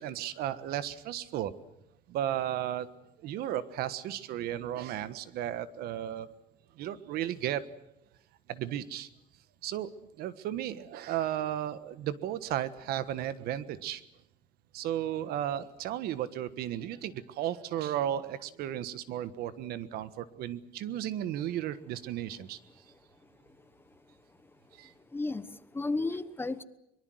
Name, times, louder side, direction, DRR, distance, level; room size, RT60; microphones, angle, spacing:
voice 1, 0.0-1.5 2.1-2.9 3.2-6.3 6.8-7.6 8.5-9.1 9.6-9.9 10.2-14.0 14.7-22.6 24.7-24.9, right 11 dB, 75° right, 14 dB, 1.5 m, -34 dB
voice 2, 24.8-26.6, left 3 dB, 15° left, 13 dB, 1.1 m, -34 dB
23.5 x 23.0 x 7.9 m, 0.83 s
cardioid pair, 140°, 16 cm